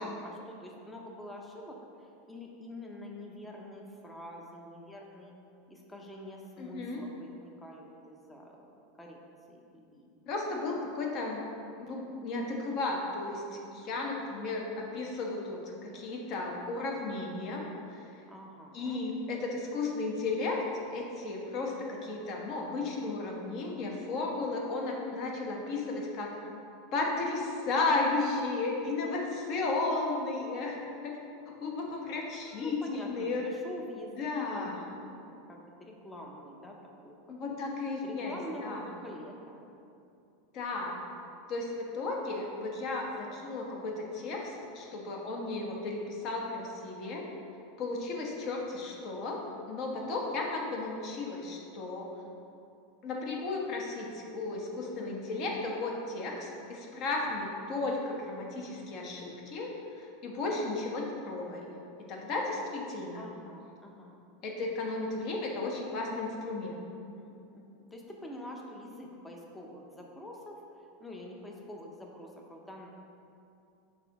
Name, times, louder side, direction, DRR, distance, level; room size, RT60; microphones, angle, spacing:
voice 1, 0.0-5.3 5.7-8.6 9.0-9.2 9.5-10.1 18.3-19.0 32.4-36.8 37.0-37.6 38.0-39.6 63.2-64.2 66.9-72.9, left 1 dB, 10° left, 0 dB, 0.7 m, -46 dB
voice 2, 6.6-7.0 10.3-11.4 11.8-18.0 18.7-20.6 20.9-26.3 26.9-30.8 31.0-31.2 31.5-33.5 34.2-34.8 37.3-38.8 40.5-41.0 41.5-47.3 47.8-52.1 53.0-61.8 62.1-63.3 64.4-66.8, left 3 dB, 45° left, 0 dB, 1.1 m, -34 dB
6.0 x 3.8 x 4.6 m, 2.6 s
supercardioid pair, 140°, 0 cm